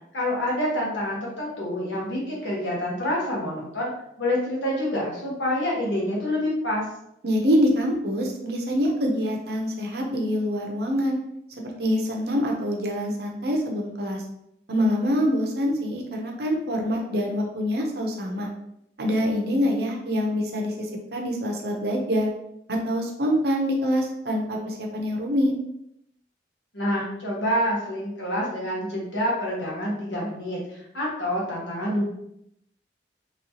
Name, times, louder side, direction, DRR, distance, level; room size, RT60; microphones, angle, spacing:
voice 1, 0.1-3.9 4.2-6.8 26.7-32.1, left 1 dB, 85° left, -4 dB, 1.3 m, -27 dB
voice 2, 7.2-11.2 11.6-14.2 14.7-18.5 19.0-22.3 22.7-25.5, equal, 60° right, 1 dB, 0.6 m, -25 dB
3.1 x 3.0 x 2.8 m, 0.78 s
head